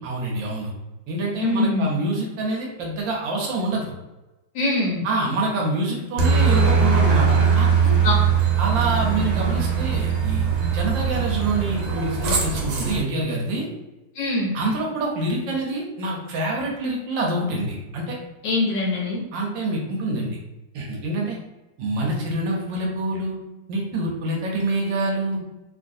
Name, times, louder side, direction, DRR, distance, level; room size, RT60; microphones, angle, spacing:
voice 1, 0.0-0.7 1.1-3.9 5.0-8.1 8.6-13.7 14.5-18.2 19.3-20.4 20.7-21.4 21.8-23.4 23.7-25.4, right 2 dB, 70° right, -1 dB, 1.3 m, -26 dB
voice 2, 1.4-1.9 4.5-5.0 8.0-8.1 14.2-14.5 18.4-19.2, left 2 dB, 70° left, -2 dB, 1.2 m, -23 dB
Aircraft, 6.2-13.0, right 6 dB, 90° right, 1.6 m, -20 dB
3.1 x 2.9 x 2.6 m, 1.0 s
omnidirectional pair, 2.2 m